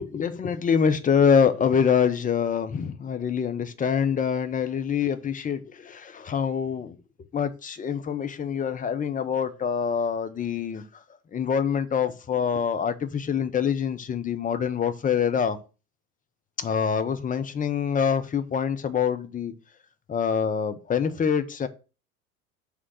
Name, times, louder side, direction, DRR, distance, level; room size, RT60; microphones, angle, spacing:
voice 1, 0.0-7.0 7.3-10.8 11.3-15.6 16.6-19.5 20.1-21.7, left 7 dB, 20° left, 0.8 m, -25 dB
6.6 x 3.6 x 6.2 m
figure-of-eight pair, 80°, 42 cm